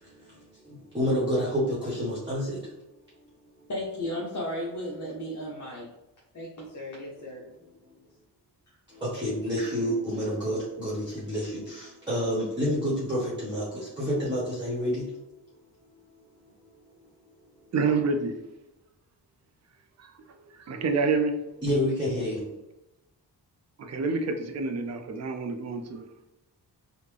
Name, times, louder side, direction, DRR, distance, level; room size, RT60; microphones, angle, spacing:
voice 1, 0.0-2.7 7.2-7.3 8.9-15.1 15.9-16.0 21.6-22.5, equal, 10° right, -7 dB, 1.1 m, -29 dB
voice 2, 3.7-5.9 6.3-7.5, left 1 dB, 45° left, -4 dB, 0.8 m, -35 dB
voice 3, 17.7-18.4 20.0-20.1 20.6-21.3 23.8-26.2, right 4 dB, 40° right, 5 dB, 0.4 m, -28 dB
3.7 x 2.1 x 3.2 m, 0.95 s
wide cardioid pair, 110°, 42 cm